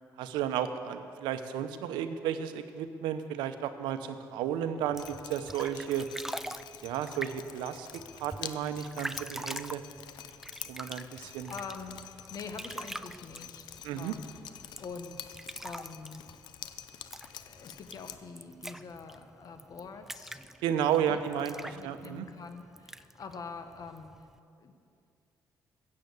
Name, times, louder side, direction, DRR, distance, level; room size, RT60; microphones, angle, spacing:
voice 1, 0.2-6.1 6.8-7.9 8.1-9.8 10.7-11.5 13.8-14.1 20.6-22.3, right 9 dB, 90° right, 9 dB, 0.8 m, -33 dB
sound 1, 4.8-24.4, right 1 dB, 5° right, 0.4 m, -45 dB
Drip, 5.0-18.2, left 10 dB, 75° left, 0.7 m, -47 dB
voice 2, 11.0-14.3 14.8-15.2 15.6-16.4 17.4-20.5 21.1-21.2 21.6-24.1 24.6-24.7, left 4 dB, 50° left, 7 dB, 1.4 m, -45 dB
15.0 x 7.6 x 8.3 m, 2.4 s
cardioid pair, 75°, 8 cm